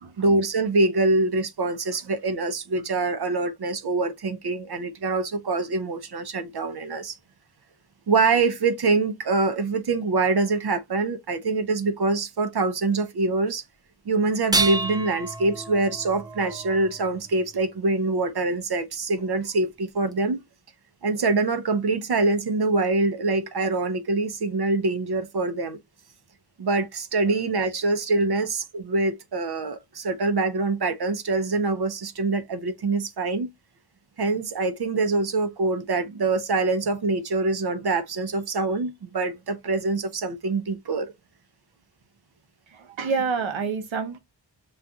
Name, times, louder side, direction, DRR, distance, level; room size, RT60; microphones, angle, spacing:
voice 1, 0.2-7.2 8.1-13.6 14.1-20.4 21.0-25.8 26.6-33.5 34.2-41.1, right 3 dB, 55° right, 0.7 m, -24 dB
sound 1, 14.4-17.6 19.2-19.3 20.1-20.2, right 3 dB, 10° right, 0.6 m, -30 dB
voice 2, 42.7-44.2, right 5 dB, 80° right, 0.9 m, -27 dB
6.9 x 2.4 x 2.3 m
cardioid pair, 45°, 46 cm